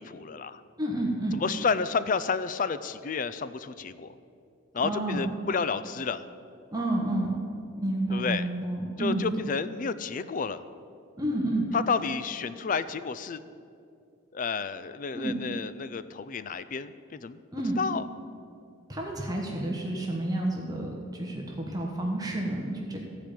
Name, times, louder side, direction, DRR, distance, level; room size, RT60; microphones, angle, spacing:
voice 1, 0.0-0.6 1.3-4.1 4.7-6.3 8.1-8.5 9.0-10.6 11.7-13.4 14.3-17.4 17.8-18.0, left 5 dB, 40° left, 14 dB, 0.4 m, -31 dB
voice 2, 0.8-1.4 4.8-5.3 6.7-7.4 7.8-9.3 11.2-11.6 15.1-15.4 17.5-17.8 18.9-23.0, right 1 dB, 20° right, -1 dB, 1.3 m, -30 dB
14.5 x 5.1 x 9.1 m, 2.4 s
head